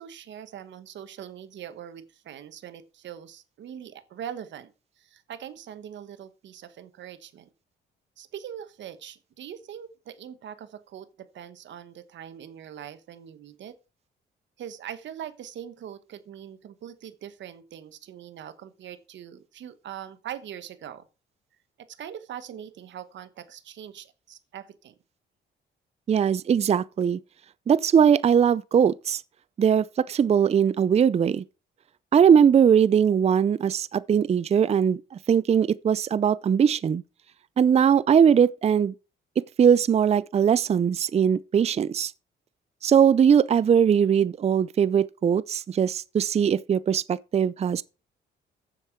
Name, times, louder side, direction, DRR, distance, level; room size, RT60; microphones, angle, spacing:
voice 1, 0.0-7.5 8.2-13.8 14.6-21.1 21.8-24.9, right 9 dB, 65° right, 1.1 m, -42 dB
voice 2, 26.1-27.2 27.7-29.2 29.6-31.4 32.1-35.0 35.3-37.0 37.6-38.9 39.4-42.1 42.8-47.8, right 8 dB, 30° right, 0.4 m, -20 dB
10.0 x 7.4 x 4.6 m
cardioid pair, 90°, 20 cm